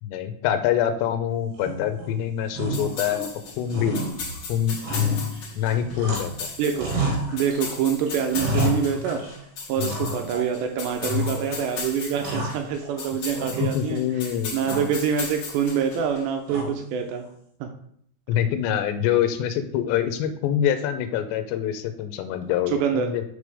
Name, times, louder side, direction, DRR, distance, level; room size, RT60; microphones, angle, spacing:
voice 1, 0.0-3.3 3.6-4.0 4.5-4.8 5.6-6.5 9.8-9.9 13.6-14.5 18.3-23.2, left 9 dB, 80° left, 7 dB, 2.8 m, -25 dB
sound 1, 1.6-2.1 2.5-3.4 3.7-6.4 6.7-7.7 8.1-9.4 9.9-10.5 11.0-11.6 12.0-13.0 13.4-14.1 14.6-15.1 16.5-17.0, left 1 dB, 65° right, 3.1 m, -30 dB
sound 2, 2.7-16.2, left 5 dB, 65° left, 1.7 m, -37 dB
voice 2, 6.6-6.9 7.3-9.2 9.7-17.3 17.6-17.7 22.7-23.1, right 7 dB, 80° right, 4 dB, 2.7 m, -26 dB
6.6 x 5.3 x 4.8 m, 0.66 s
omnidirectional pair, 5.3 m